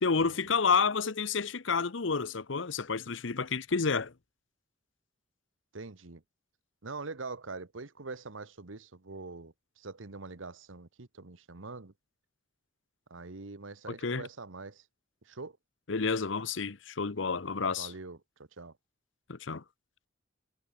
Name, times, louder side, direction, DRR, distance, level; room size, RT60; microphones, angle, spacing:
voice 1, 0.0-4.1 14.0-14.2 15.9-17.9 19.3-19.6, left 5 dB, 65° left, 0.9 m, -30 dB
voice 2, 5.7-6.2 6.8-11.9 13.1-14.8 15.2-15.6 17.8-18.2 18.6-18.7, right 3 dB, 75° right, 1.2 m, -43 dB
head